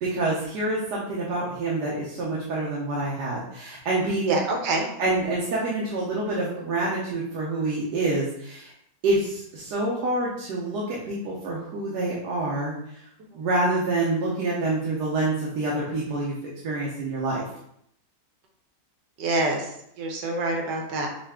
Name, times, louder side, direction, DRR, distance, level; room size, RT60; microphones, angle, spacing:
voice 1, 0.0-4.4 5.0-8.7 9.0-12.7 13.3-16.4 16.6-17.4, right 2 dB, 70° right, -5 dB, 1.4 m, -27 dB
voice 2, 4.3-4.9 19.2-21.1, right 2 dB, 85° right, 1 dB, 1.5 m, -26 dB
5.6 x 2.4 x 3.5 m, 0.74 s
omnidirectional pair, 1.8 m